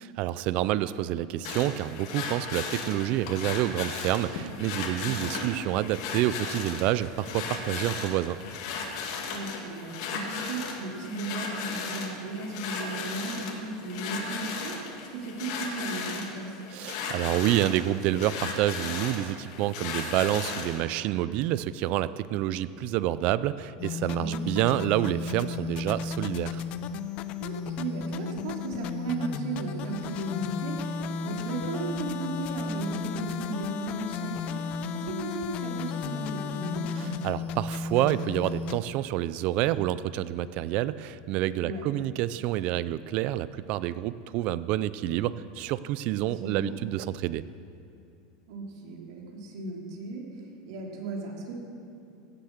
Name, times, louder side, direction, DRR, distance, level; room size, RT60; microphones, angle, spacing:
voice 1, 0.0-8.4 16.7-26.6 37.0-47.4, right 13 dB, 50° right, 16 dB, 0.4 m, -28 dB
sound 1, 1.4-20.8, left 5 dB, 65° left, 2.1 m, -36 dB
voice 2, 5.0-5.6 9.3-14.7 15.1-16.6 24.1-24.4 27.4-34.6 34.9-36.9 41.6-41.8 46.2-46.8 48.5-50.2 50.7-51.6, right 3 dB, 70° right, -1 dB, 3.0 m, -36 dB
sound 2, 23.8-38.8, left 5 dB, 45° left, 0.6 m, -34 dB
16.0 x 7.8 x 7.3 m, 2.5 s
supercardioid pair, 145°, 3 cm